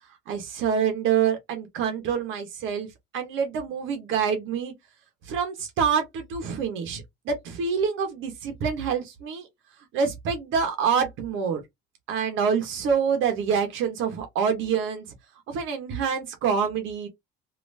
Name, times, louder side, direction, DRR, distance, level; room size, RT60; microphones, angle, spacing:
voice 1, 0.3-2.9 3.1-4.7 5.3-9.5 9.9-11.6 12.1-15.0 15.5-17.1, right 6 dB, 75° right, 1.1 m, -26 dB
3.3 x 2.8 x 2.7 m
cardioid pair, 110°, 20 cm